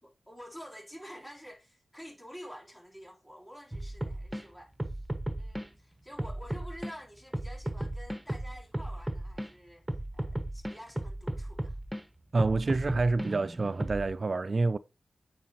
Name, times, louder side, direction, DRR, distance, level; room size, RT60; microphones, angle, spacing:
voice 1, 0.0-9.9 10.1-11.8, equal, 25° left, 3.6 m, -49 dB
sound 1, 3.7-4.4 4.8-5.7 6.2-6.9 7.3-9.5 9.9-12.0 12.4-14.1, right 1 dB, 10° right, 1.2 m, -35 dB
voice 2, 12.3-14.8, right 3 dB, 55° right, 0.3 m, -28 dB
9.1 x 4.7 x 2.9 m
cardioid pair, 45°, 0 cm